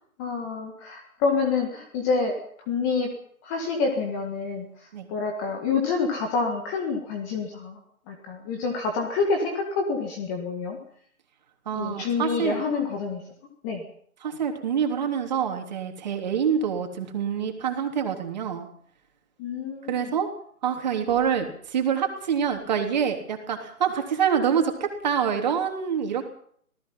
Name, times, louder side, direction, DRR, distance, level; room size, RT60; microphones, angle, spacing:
voice 1, 0.2-2.4 2.7-3.1 3.4-4.7 5.1-7.8 8.1-10.8 11.7-13.2 13.6-13.8 19.4-20.1, left 4 dB, 10° left, 3 dB, 1.8 m, -27 dB
voice 2, 11.6-12.6 14.2-18.7 19.9-20.3 20.6-26.2, right 7 dB, 30° right, 4 dB, 3.3 m, -26 dB
26.0 x 18.5 x 5.6 m, 0.62 s
figure-of-eight pair, 150°, 44 cm